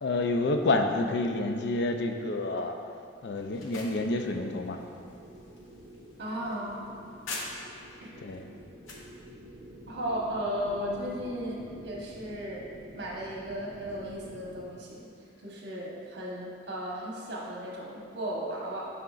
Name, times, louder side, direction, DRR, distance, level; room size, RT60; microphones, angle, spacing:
voice 1, 0.0-2.7 3.2-4.8 8.2-8.5 11.1-11.2 11.7-11.9, left 2 dB, 55° left, 5 dB, 0.4 m, -29 dB
sound 1, 3.3-7.9 8.3-9.1, left 3 dB, 85° left, 0.8 m, -44 dB
sound 2, 3.4-14.6, equal, 35° right, 1.1 m, -49 dB
voice 2, 6.2-6.9 8.0-8.2 9.9-12.7 13.0-15.1 15.4-18.8, equal, 55° right, -4 dB, 1.1 m, -35 dB
7.5 x 5.7 x 2.4 m, 2.6 s
head